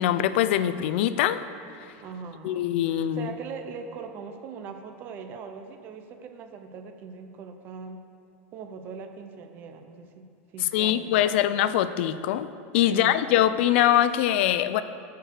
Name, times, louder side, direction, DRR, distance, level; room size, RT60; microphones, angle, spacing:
voice 1, 0.0-1.4 2.4-3.3 10.6-12.5 12.7-14.8, left 12 dB, 60° left, 13 dB, 0.4 m, -23 dB
voice 2, 2.0-8.1 8.5-11.5 12.9-13.6, right 5 dB, 30° right, 6 dB, 0.5 m, -41 dB
12.5 x 4.6 x 6.6 m, 2.4 s
supercardioid pair, 175°, 7 cm